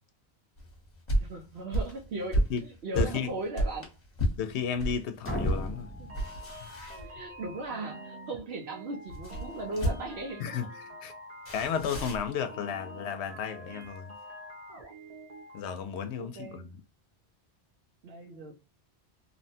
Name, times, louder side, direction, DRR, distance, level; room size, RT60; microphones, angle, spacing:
sound 1, 0.6-5.0 5.4-5.7 6.0-7.5 9.1-10.3 11.5-12.3, equal, 40° left, 1.0 m, -32 dB
voice 1, 1.2-3.9 6.0-6.1 7.0-10.4 16.2-16.7 18.0-18.6, right 2 dB, 70° right, 0.9 m, -38 dB
voice 2, 2.9-3.3 4.4-5.9 6.6-6.7 10.4-10.7 11.0-11.1 11.5-14.2 15.5-16.7, left 7 dB, 80° left, 0.8 m, -33 dB
sound 2, 5.2-7.1, equal, 20° left, 0.4 m, -36 dB
sound 3, 5.7-15.6, equal, 40° right, 0.7 m, -47 dB
2.8 x 2.1 x 2.6 m
omnidirectional pair, 1.1 m